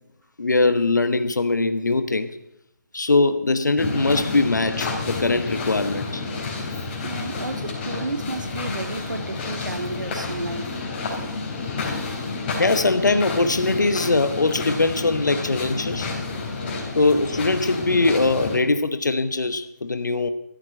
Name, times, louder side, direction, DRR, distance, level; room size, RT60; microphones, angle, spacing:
voice 1, 0.4-2.3 2.9-6.2 12.6-16.1 17.0-20.3, left 3 dB, 75° left, 1.0 m, -21 dB
sound 1, 3.8-18.6, left 3 dB, 30° left, 4.1 m, -30 dB
voice 2, 7.0-10.8, right 2 dB, 85° right, 1.0 m, -32 dB
14.0 x 7.6 x 8.8 m
figure-of-eight pair, 150°, 10 cm